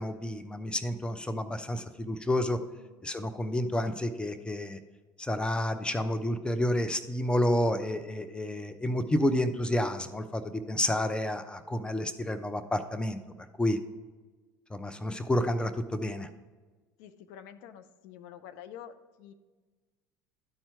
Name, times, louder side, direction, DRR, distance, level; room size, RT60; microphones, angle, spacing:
voice 1, 0.0-2.6 3.0-4.8 5.2-13.2 13.6-13.8 14.7-16.3, left 1 dB, 10° left, 10 dB, 0.7 m, -30 dB
voice 2, 17.0-19.3, left 9 dB, 65° left, 10 dB, 0.6 m, -48 dB
12.0 x 4.4 x 4.5 m, 1.3 s
hypercardioid pair, 70°, 11 cm